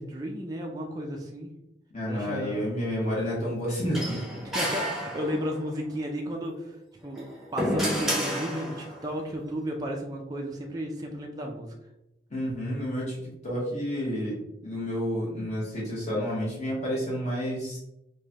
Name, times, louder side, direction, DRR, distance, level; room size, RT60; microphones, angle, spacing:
voice 1, 0.0-1.5 2.1-2.7 4.4-6.8 7.0-7.2 7.5-11.7, equal, 20° right, 1 dB, 0.4 m, -33 dB
voice 2, 1.9-4.2 12.3-17.8, equal, 40° left, -6 dB, 0.9 m, -30 dB
sound 1, 3.9-5.7 7.0-9.1, equal, ahead, 0.8 m, -30 dB
4.8 x 2.2 x 2.7 m, 0.89 s
head